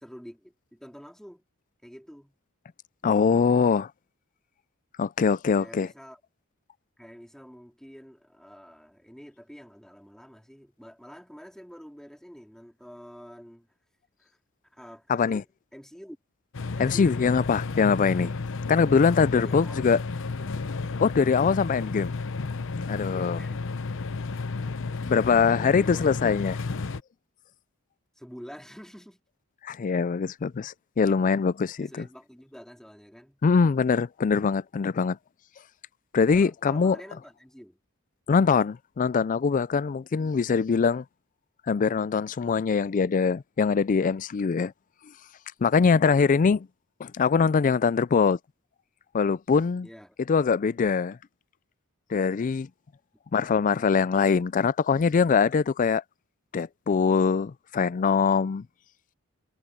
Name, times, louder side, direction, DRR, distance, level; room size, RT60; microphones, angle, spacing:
voice 1, 0.0-1.4 1.8-2.4 5.6-6.2 7.0-13.7 14.2-14.4 14.6-15.5 15.7-16.2 16.7-17.2 19.3-19.8 20.4-20.5 23.1-23.7 25.2-26.1 28.1-29.2 31.8-33.4 36.3-37.8 49.8-50.2, equal, ahead, 3.2 m, -47 dB
voice 2, 3.0-3.9 5.0-5.9 15.1-15.4 16.8-18.3 18.7-20.0 21.0-22.1 22.9-23.4 25.0-26.6 29.6-32.0 33.4-35.2 36.1-37.0 38.3-41.0 41.7-44.7 45.6-46.7 47.0-48.4 49.1-49.9 50.3-51.2 52.1-52.7 53.3-56.0 56.5-58.7, left 5 dB, 35° left, 0.3 m, -23 dB
sound 1, 16.5-27.0, left 4 dB, 60° left, 0.8 m, -32 dB
head